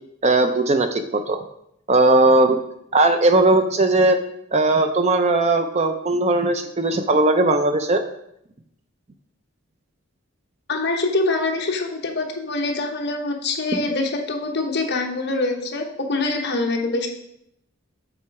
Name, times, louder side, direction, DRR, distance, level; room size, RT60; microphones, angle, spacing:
voice 1, 0.2-1.4 1.9-2.6 2.9-4.2 4.5-8.0, right 2 dB, 30° right, 8 dB, 0.4 m, -18 dB
voice 2, 10.7-17.1, left 2 dB, 50° left, 2 dB, 1.0 m, -24 dB
7.5 x 3.9 x 4.6 m, 0.76 s
head